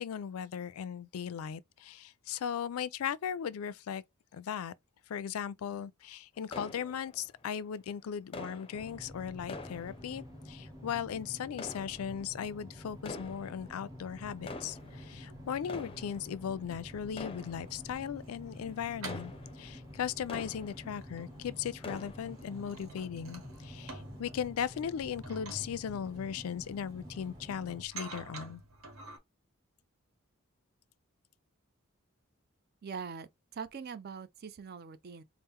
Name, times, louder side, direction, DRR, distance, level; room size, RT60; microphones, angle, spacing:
voice 1, 0.0-4.0 4.3-4.7 5.1-28.6, left 8 dB, 85° left, 0.4 m, -38 dB
sound 1, 6.5-7.6 8.3-10.7 11.5-12.5 13.0-13.9 14.3-21.3 21.6-22.7 23.1-23.2 23.8-23.9, left 3 dB, 25° left, 0.5 m, -47 dB
sound 2, 8.7-27.8, left 1 dB, 15° right, 1.1 m, -49 dB
sound 3, 14.1-16.2 16.7-29.2, right 3 dB, 75° right, 1.3 m, -51 dB
voice 2, 32.8-35.2, right 6 dB, 50° right, 0.4 m, -43 dB
4.3 x 2.1 x 3.6 m
head